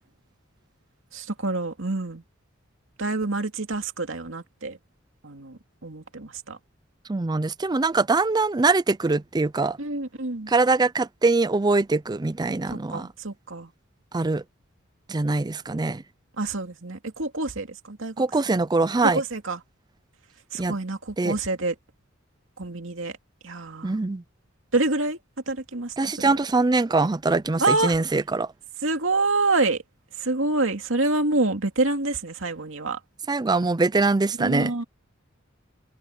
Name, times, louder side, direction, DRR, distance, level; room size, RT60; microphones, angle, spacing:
voice 1, 1.1-2.2 3.0-4.8 5.2-6.6 9.8-10.5 12.7-13.7 16.4-18.1 19.0-19.6 20.5-21.7 22.6-23.2 23.4-24.0 24.7-25.2 25.5-26.3 27.6-28.0 28.8-29.8 30.2-33.0 34.4-34.8, right 2 dB, 75° right, 2.6 m, -27 dB
voice 2, 7.1-9.8 10.5-13.1 14.1-14.4 15.1-16.0 18.2-19.2 20.6-20.7 21.2-21.4 23.8-24.2 26.0-28.5 33.3-34.7, right 3 dB, 20° right, 0.5 m, -23 dB
head